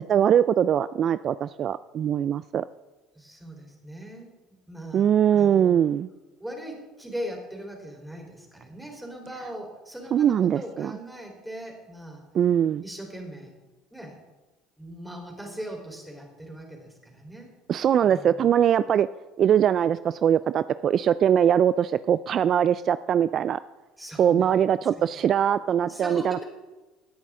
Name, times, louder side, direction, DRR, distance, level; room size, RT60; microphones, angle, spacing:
voice 1, 0.0-2.6 4.9-6.1 10.1-10.9 12.3-12.8 17.7-19.1 19.4-23.6 24.2-26.4, right 9 dB, 50° right, 15 dB, 0.3 m, -22 dB
voice 2, 3.2-4.3 4.7-5.8 6.4-12.2 12.8-13.5 13.9-14.2 14.8-17.5 18.0-18.5 24.0-24.5 25.0-25.2 25.6-26.4, equal, 5° right, 1 dB, 4.0 m, -40 dB
17.5 x 9.4 x 3.7 m, 1.2 s
supercardioid pair, 90°, 0 cm